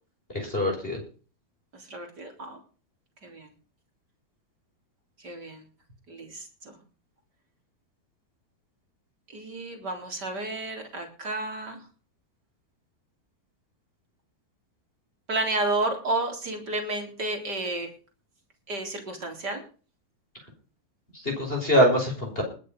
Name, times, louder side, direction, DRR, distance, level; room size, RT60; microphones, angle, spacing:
voice 1, 0.3-1.0 21.2-22.4, equal, 15° left, 1 dB, 5.7 m, -23 dB
voice 2, 1.7-2.6 3.2-3.5 5.2-5.6 6.1-6.8 9.3-11.8 15.3-17.9 18.7-19.6, right 2 dB, 25° right, 3 dB, 4.0 m, -31 dB
20.5 x 7.6 x 5.4 m, 0.39 s
omnidirectional pair, 4.3 m